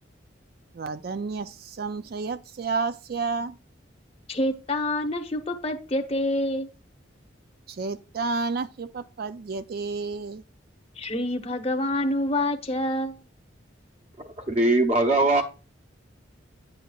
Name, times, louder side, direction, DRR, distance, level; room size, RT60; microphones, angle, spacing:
voice 1, 0.7-3.6 7.7-10.4, right 4 dB, 50° right, 0.4 m, -31 dB
voice 2, 4.3-6.7 11.0-13.2, left 1 dB, 30° left, 0.9 m, -27 dB
voice 3, 14.2-15.4, right 2 dB, 35° right, 0.9 m, -21 dB
10.0 x 7.7 x 2.4 m
head